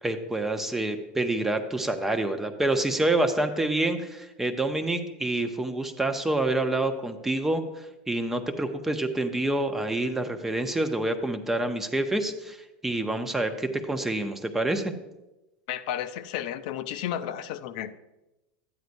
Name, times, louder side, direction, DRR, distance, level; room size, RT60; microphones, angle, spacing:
voice 1, 0.0-12.6 12.8-14.9, right 2 dB, 5° right, 0.6 m, -27 dB
voice 2, 15.7-17.9, left 11 dB, 60° left, 0.5 m, -32 dB
12.5 x 9.3 x 2.6 m
supercardioid pair, 155°, 5 cm